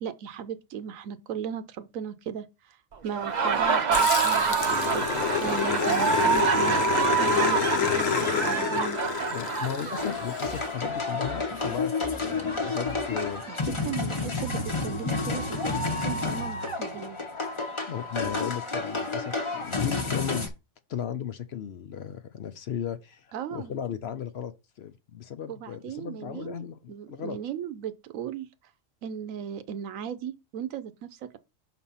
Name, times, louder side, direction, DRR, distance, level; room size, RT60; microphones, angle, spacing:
voice 1, 0.0-2.8 3.0-5.1 5.4-6.8 7.1-9.0 13.5-13.6 13.8-17.2 23.3-23.7 25.5-28.5 29.0-31.4, right 8 dB, 80° right, 1.1 m, -37 dB
Laughter, 3.1-10.7, right 6 dB, 45° right, 0.6 m, -26 dB
Growling, 3.9-10.6, left 9 dB, 75° left, 1.2 m, -29 dB
voice 2, 9.3-13.4 17.9-20.5 20.9-27.4, left 9 dB, 60° left, 0.8 m, -35 dB
sound 1, 10.0-20.5, left 3 dB, 25° left, 0.9 m, -30 dB
6.0 x 4.1 x 5.5 m
omnidirectional pair, 1.4 m